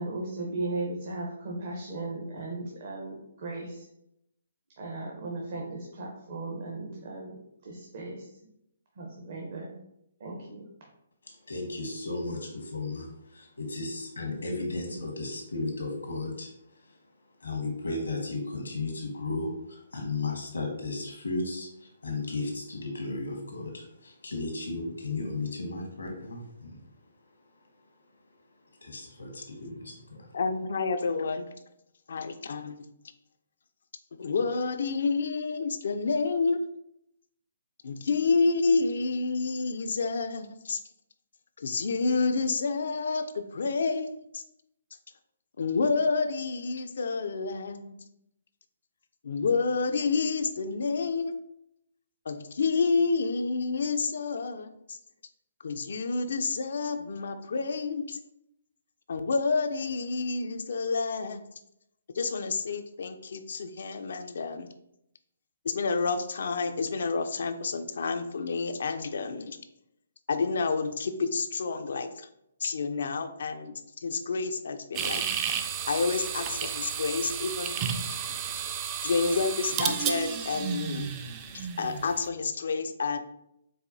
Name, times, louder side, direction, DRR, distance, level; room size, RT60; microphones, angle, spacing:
voice 1, 0.0-3.9 4.8-7.3 7.6-8.3 9.0-9.7 10.2-10.6, right 2 dB, 55° right, -1 dB, 0.7 m, -36 dB
voice 2, 11.2-16.5 17.4-26.8 28.8-30.3, left 3 dB, 85° left, 1 dB, 1.0 m, -35 dB
voice 3, 30.3-31.5 32.1-32.9 34.2-36.6 37.8-40.8 41.6-44.4 45.6-47.9 49.2-51.3 52.3-55.0 55.6-58.2 59.1-61.4 62.1-64.7 65.6-69.6 70.3-72.3 72.6-73.7 74.0-75.2 75.9-77.8 79.0-81.1 81.5-83.2, left 4 dB, 65° left, 9 dB, 0.3 m, -29 dB
sound 1, 74.9-82.2, right 7 dB, 30° right, 0.3 m, -32 dB
4.6 x 2.2 x 2.6 m, 0.79 s
hypercardioid pair, 140°, 0 cm